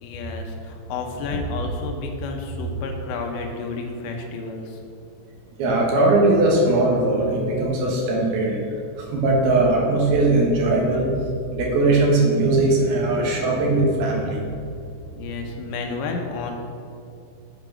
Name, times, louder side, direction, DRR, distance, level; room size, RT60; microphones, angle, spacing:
voice 1, 0.0-4.8 15.1-16.5, left 2 dB, 70° left, 2 dB, 2.1 m, -30 dB
voice 2, 5.6-8.6 9.0-11.1 11.5-14.4, right 2 dB, 80° right, -2 dB, 3.3 m, -19 dB
7.9 x 5.3 x 6.1 m, 2.5 s
omnidirectional pair, 4.5 m